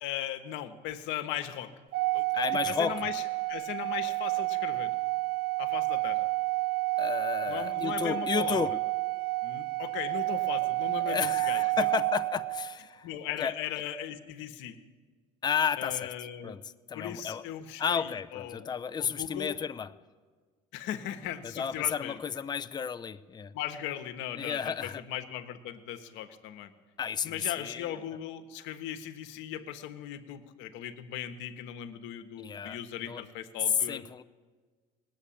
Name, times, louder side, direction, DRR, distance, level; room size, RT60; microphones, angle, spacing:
voice 1, 0.0-1.7 2.1-2.2 2.7-3.2 3.5-4.9 5.6-6.3 7.5-8.6 9.4-11.8 13.0-14.8 15.8-16.6 16.9-18.7 19.0-19.6 20.7-22.2 23.5-26.7 27.2-34.0, left 11 dB, 70° left, 8 dB, 1.2 m, -38 dB
Organ, 1.9-12.8, right 23 dB, 55° right, 0.4 m, -30 dB
voice 2, 2.3-3.0 7.0-8.7 11.1-13.1 13.4-13.5 15.4-16.1 16.4-17.4 17.8-19.9 21.4-23.5 24.4-25.0 27.0-28.0 32.4-33.2 33.9-34.2, left 7 dB, 20° left, 12 dB, 0.5 m, -32 dB
19.0 x 8.4 x 8.6 m, 1.5 s
hypercardioid pair, 75°, 20 cm